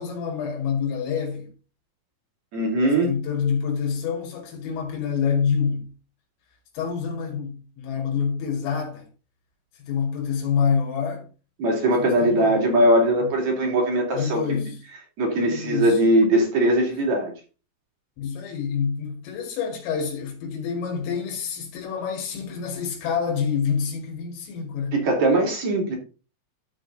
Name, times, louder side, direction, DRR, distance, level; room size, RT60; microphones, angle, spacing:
voice 1, 0.0-1.5 3.0-5.9 6.7-9.1 9.8-11.3 12.0-12.6 13.2-13.3 14.1-14.8 15.4-16.0 18.2-25.1, left 6 dB, 85° left, 4.8 m, -27 dB
voice 2, 2.5-3.1 11.6-14.6 15.2-17.3 24.9-26.0, right 1 dB, 40° right, 3.8 m, -20 dB
13.5 x 5.2 x 4.0 m
omnidirectional pair, 5.7 m